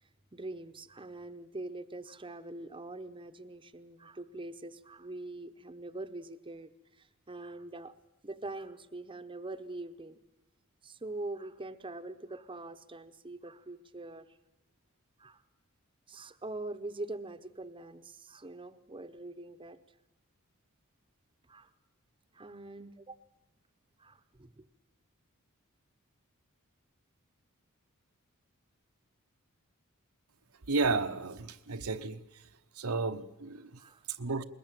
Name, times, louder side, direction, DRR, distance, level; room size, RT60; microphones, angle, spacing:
voice 1, 0.3-7.9 8.2-10.2 10.8-14.4 15.2-15.4 16.1-19.8 21.5-21.7 22.3-23.2 24.0-24.7 33.8-34.1, right 2 dB, 25° right, 9 dB, 0.9 m, -43 dB
voice 2, 30.7-32.2 32.8-33.8 34.2-34.4, right 3 dB, 75° right, 8 dB, 1.0 m, -32 dB
21.0 x 20.0 x 9.1 m, 0.92 s
head